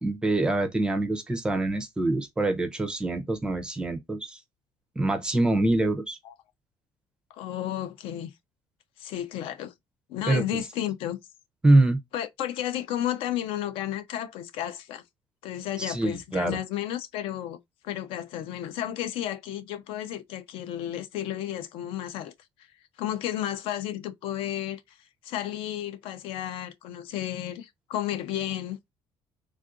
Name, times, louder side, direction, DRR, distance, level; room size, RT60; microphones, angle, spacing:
voice 1, 0.0-4.4 5.0-6.2 10.3-10.6 11.6-12.0 15.8-16.6, right 2 dB, 10° right, 0.4 m, -25 dB
voice 2, 7.3-8.3 9.0-9.7 10.1-11.2 12.1-15.0 15.4-17.6 17.8-22.3 23.0-25.0 25.2-28.8, left 11 dB, 65° left, 0.4 m, -32 dB
3.5 x 2.4 x 2.4 m
cardioid pair, 175°, 10 cm